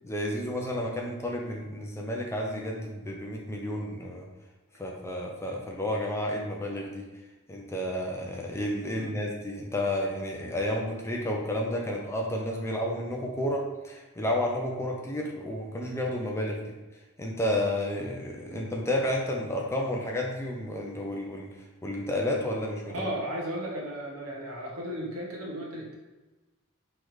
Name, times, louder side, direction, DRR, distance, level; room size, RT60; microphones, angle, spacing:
voice 1, 0.0-4.3 4.8-7.1 7.5-16.8 17.2-21.5 21.8-23.1, left 1 dB, 10° left, 0 dB, 0.4 m, -31 dB
voice 2, 22.9-26.0, equal, 85° right, -2 dB, 1.0 m, -35 dB
3.9 x 3.2 x 3.1 m, 1.2 s
head